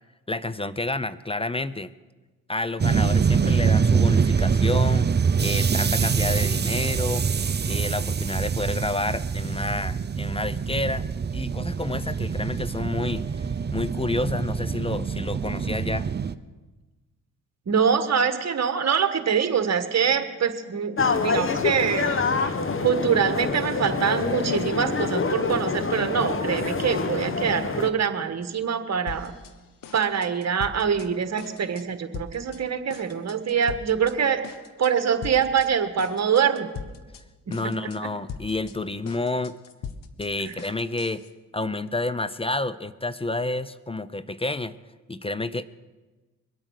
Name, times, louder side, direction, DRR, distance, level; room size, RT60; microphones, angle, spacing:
voice 1, 0.3-1.9 2.5-5.1 5.4-7.2 7.7-11.0 11.3-13.2 13.7-16.1 37.5-39.6 40.2-41.2 41.5-44.7 45.1-45.6, left 2 dB, 15° left, 16 dB, 0.6 m, -29 dB
sound 1, 2.8-16.3, right 6 dB, 30° right, 0.6 m, -24 dB
voice 2, 17.7-22.5 22.8-29.3 29.9-34.4 34.8-36.7 37.5-37.7 40.4-40.5, right 7 dB, 50° right, 9 dB, 1.5 m, -24 dB
sound 2, 21.0-27.9, left 4 dB, 35° left, 1.2 m, -26 dB
sound 3, 29.1-29.5 29.8-31.1 31.4-31.9 32.1-32.6 32.9-34.1 34.4-34.9 35.2-35.7 36.0-37.2 37.5-38.0 38.3-41.3, left 6 dB, 70° left, 1.1 m, -40 dB
22.5 x 8.8 x 6.5 m, 1.2 s
supercardioid pair, 60°, 35 cm